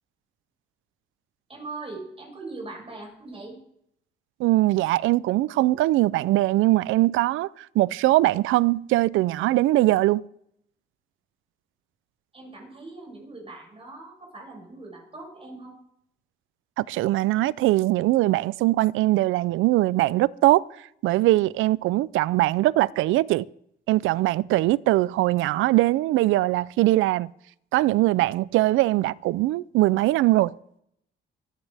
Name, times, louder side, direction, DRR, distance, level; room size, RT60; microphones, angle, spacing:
voice 1, 1.5-3.6 12.3-15.7, right 3 dB, 30° right, 6.4 m, -40 dB
voice 2, 4.4-10.2 16.8-20.6 21.0-23.5 23.9-27.3 27.7-30.5, right 17 dB, 90° right, 0.4 m, -21 dB
25.5 x 10.5 x 3.4 m
cardioid pair, 90°, 20 cm